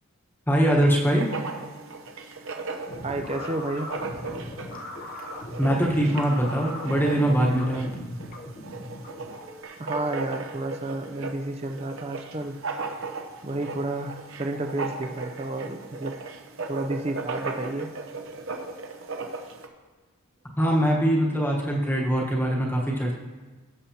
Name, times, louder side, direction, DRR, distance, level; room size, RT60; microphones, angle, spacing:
voice 1, 0.5-1.3 5.6-7.8 20.6-23.2, right 1 dB, 10° left, -2 dB, 1.2 m, -22 dB
Writing, 0.9-19.7, right 3 dB, 65° right, 0.8 m, -37 dB
sound 1, 2.9-9.6, left 1 dB, 40° left, 0.8 m, -39 dB
voice 2, 3.0-3.9 9.8-12.6 13.4-16.2 16.7-17.9, right 2 dB, 25° right, 5 dB, 0.5 m, -31 dB
16.0 x 6.8 x 2.9 m, 1.3 s
head